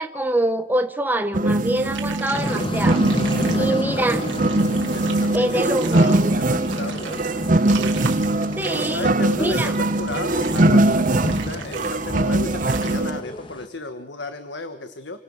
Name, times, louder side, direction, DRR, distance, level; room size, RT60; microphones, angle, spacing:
voice 1, 0.0-3.1 3.5-4.2 5.3-6.4 8.6-9.1 9.4-9.7, right 1 dB, 10° right, 7 dB, 1.2 m, -24 dB
sound 1, 1.3-13.2, right 2 dB, 45° right, 0.9 m, -21 dB
sound 2, 1.9-13.0, right 7 dB, 80° right, 3.4 m, -39 dB
sound 3, 2.3-13.7, left 1 dB, 25° left, 1.4 m, -31 dB
voice 2, 3.4-4.1 4.9-7.2 8.7-15.2, left 2 dB, 65° left, 9 dB, 1.6 m, -34 dB
29.5 x 24.5 x 7.3 m, 0.95 s
head